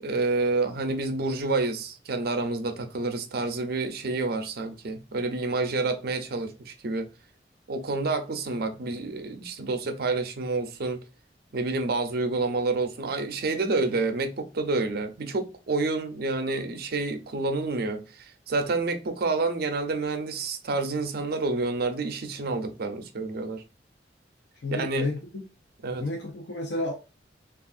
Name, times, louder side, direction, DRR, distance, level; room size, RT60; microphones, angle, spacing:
voice 1, 0.0-7.1 7.7-11.0 11.5-23.6 24.7-25.1 25.8-26.0, right 3 dB, 60° right, 0.5 m, -28 dB
voice 2, 24.6-25.4 26.0-26.9, left 2 dB, 75° left, 0.6 m, -31 dB
3.4 x 2.4 x 2.4 m
head